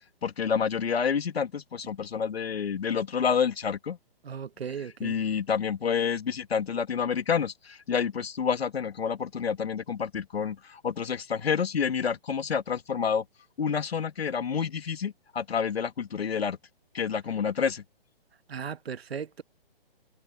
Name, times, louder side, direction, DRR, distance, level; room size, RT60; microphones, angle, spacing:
voice 1, 0.2-4.0 5.0-13.2 13.6-16.6 16.9-17.8, left 6 dB, 75° left, 2.2 m, -28 dB
voice 2, 4.2-5.2 18.5-19.4, right 7 dB, 80° right, 1.5 m, -36 dB
hypercardioid pair, 155°, 31 cm